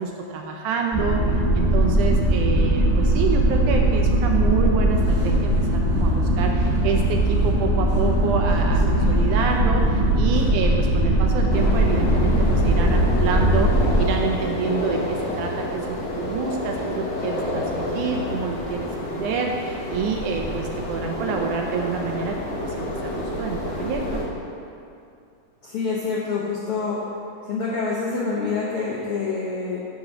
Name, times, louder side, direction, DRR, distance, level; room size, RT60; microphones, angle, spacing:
voice 1, 0.0-24.3, right 5 dB, 80° right, 2 dB, 1.9 m, -28 dB
sound 1, 0.9-14.0, right 1 dB, 15° left, 1.3 m, -20 dB
voice 2, 8.8-9.3 25.6-27.0 27.4-29.8, left 4 dB, 80° left, -5 dB, 1.3 m, -27 dB
sound 2, 11.5-24.2, left 1 dB, 55° left, 1.4 m, -29 dB
9.7 x 3.9 x 6.1 m, 2.5 s
omnidirectional pair, 3.8 m